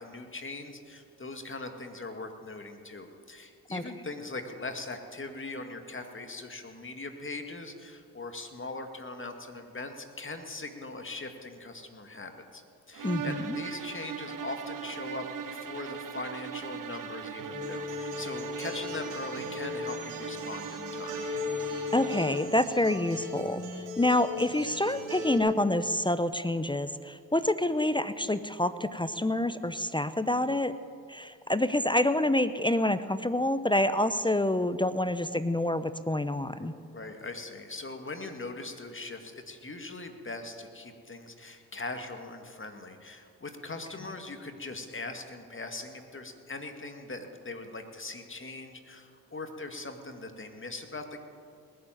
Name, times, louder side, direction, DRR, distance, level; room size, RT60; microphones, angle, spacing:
voice 1, 0.0-12.6 12.9-21.2 36.5-51.2, left 2 dB, 30° left, 6 dB, 2.2 m, -41 dB
sound 1, 12.9-22.6, right 7 dB, 50° right, 1.3 m, -39 dB
voice 2, 13.0-13.5 21.9-23.6 24.0-30.7 31.1-36.7, left 1 dB, 10° left, 13 dB, 0.7 m, -27 dB
Acoustic guitar, 17.4-25.4, left 3 dB, 85° right, 4.0 m, -37 dB
20.0 x 7.7 x 9.3 m, 2.3 s
hypercardioid pair, 50°, 42 cm